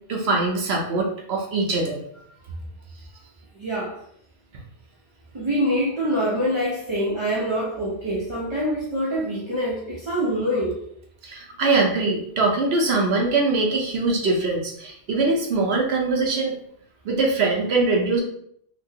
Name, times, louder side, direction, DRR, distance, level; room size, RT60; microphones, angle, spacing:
voice 1, 0.1-2.0 11.2-16.6 17.0-18.2, right 3 dB, 65° right, 0 dB, 0.9 m, -22 dB
voice 2, 3.5-4.0 5.3-10.8, equal, 35° right, -5 dB, 0.6 m, -25 dB
3.0 x 2.9 x 2.7 m, 0.67 s
omnidirectional pair, 1.2 m